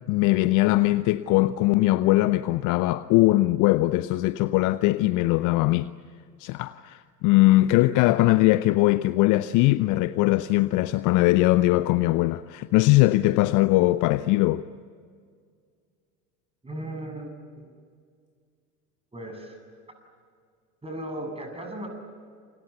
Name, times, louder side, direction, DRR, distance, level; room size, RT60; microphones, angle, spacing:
voice 1, 0.1-5.9 6.4-14.7, left 18 dB, 40° left, 0.7 m, -21 dB
voice 2, 16.6-17.3 17.6-17.7 19.1-19.6 20.8-21.9, right 1 dB, 10° right, 7.9 m, -36 dB
28.5 x 27.0 x 7.0 m
figure-of-eight pair, 80°, 48 cm